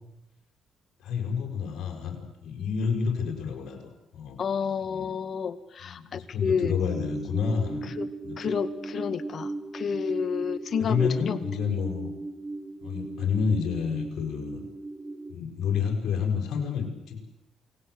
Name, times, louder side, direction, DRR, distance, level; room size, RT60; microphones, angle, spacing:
voice 1, 1.0-2.2 2.4-3.8 4.1-4.4 4.8-5.1 5.8-7.9 8.2-8.5 10.8-12.1 12.8-14.6 15.3-17.2, left 6 dB, 75° left, 2 dB, 6.6 m, -29 dB
voice 2, 4.4-6.8 7.8-8.1 8.4-11.4, left 6 dB, 55° left, 12 dB, 2.0 m, -30 dB
sound 1, 6.6-15.3, right 3 dB, 25° right, 3.5 m, -37 dB
28.5 x 20.0 x 8.1 m, 0.88 s
cardioid pair, 90°, 0 cm